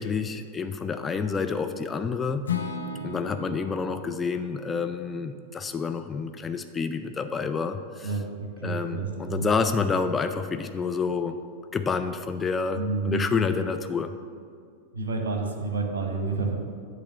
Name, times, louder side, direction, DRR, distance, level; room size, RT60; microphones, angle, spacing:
voice 1, 0.0-2.4 3.0-8.2 8.6-11.3 11.7-14.1, left 5 dB, 20° left, 8 dB, 0.3 m, -28 dB
Acoustic guitar / Strum, 2.5-6.5, left 5 dB, 70° left, 0.5 m, -37 dB
voice 2, 8.0-9.5 12.8-13.2 14.9-16.6, right 4 dB, 65° right, 3 dB, 1.0 m, -29 dB
8.5 x 3.0 x 6.2 m, 2.2 s
figure-of-eight pair, 90°, 0 cm